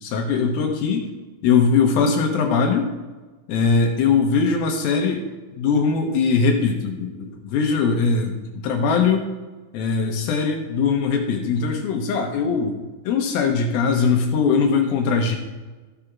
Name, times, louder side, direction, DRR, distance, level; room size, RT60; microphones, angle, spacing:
voice 1, 0.0-1.0 1.4-2.9 3.5-5.2 5.6-8.4 8.6-9.3 9.7-12.8 13.1-15.4, left 5 dB, 80° left, 3 dB, 2.7 m, -20 dB
13.5 x 5.0 x 5.9 m, 1.3 s
omnidirectional pair, 4.4 m